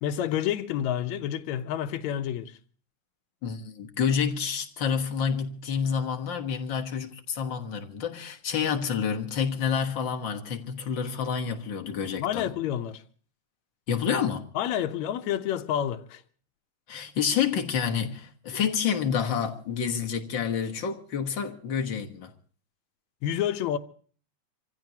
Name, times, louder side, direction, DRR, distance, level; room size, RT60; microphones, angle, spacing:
voice 1, 0.0-2.6 12.2-13.0 14.6-16.2 23.2-23.8, left 10 dB, 75° left, 2.1 m, -29 dB
voice 2, 3.4-12.5 13.9-14.5 16.9-22.3, left 7 dB, 50° left, 1.7 m, -28 dB
26.5 x 15.5 x 2.9 m
omnidirectional pair, 3.4 m